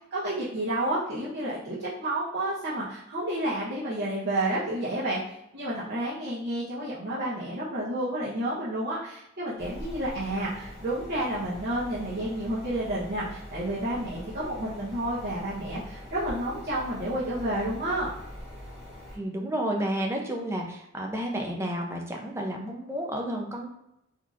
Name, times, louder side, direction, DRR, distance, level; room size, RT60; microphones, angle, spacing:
voice 1, 0.1-5.2 5.5-18.1, right 1 dB, 55° right, -10 dB, 1.0 m, -30 dB
sound 1, 9.6-19.2, equal, 30° right, 1.4 m, -43 dB
voice 2, 19.1-23.7, right 1 dB, 15° right, 1 dB, 0.5 m, -31 dB
3.9 x 2.8 x 2.5 m, 0.81 s
head